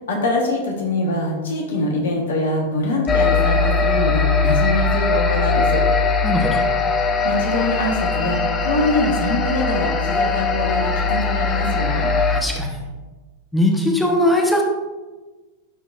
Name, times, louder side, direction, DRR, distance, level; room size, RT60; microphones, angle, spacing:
voice 1, 0.1-5.8 7.2-12.1, left 2 dB, 60° left, 1 dB, 1.2 m, -24 dB
sound 1, 3.1-12.4, left 4 dB, 25° left, 0.7 m, -20 dB
voice 2, 6.2-6.6 12.3-12.7 13.5-14.6, left 1 dB, 5° left, 0 dB, 1.0 m, -19 dB
11.0 x 3.9 x 2.5 m, 1.2 s
figure-of-eight pair, 90°, 0 cm